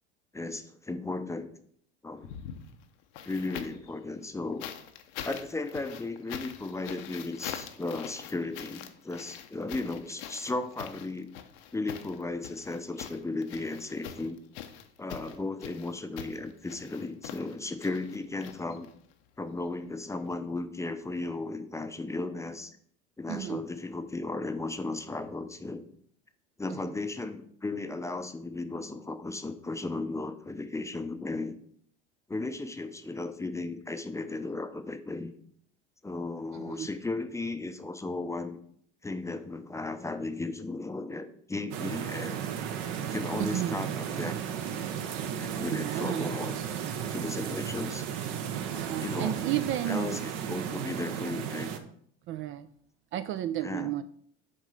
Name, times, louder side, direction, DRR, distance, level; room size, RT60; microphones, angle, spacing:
voice 1, 0.3-1.5 2.0-2.3 3.2-4.7 5.2-11.3 11.7-14.4 15.0-18.9 19.4-22.8 23.2-25.8 26.6-31.6 32.3-35.3 36.0-38.6 39.0-42.4 43.0-44.4 45.4-46.5 46.9-48.1 48.7-49.4 49.9-51.7 53.6-53.9, left 2 dB, 10° left, 9 dB, 0.6 m, -35 dB
sound 1, 2.1-3.9 4.6-19.1 20.2-20.3, left 9 dB, 70° left, 0.8 m, -44 dB
voice 2, 23.3-23.6 26.7-26.8 36.5-36.9 43.5-43.8 45.7-46.3 48.8-50.2 52.3-52.7 53.1-54.0, right 12 dB, 40° right, 12 dB, 0.4 m, -32 dB
sound 2, 41.7-51.8, right 8 dB, 65° right, 0.9 m, -34 dB
6.3 x 3.7 x 5.4 m, 0.63 s
hypercardioid pair, 80°, 30 cm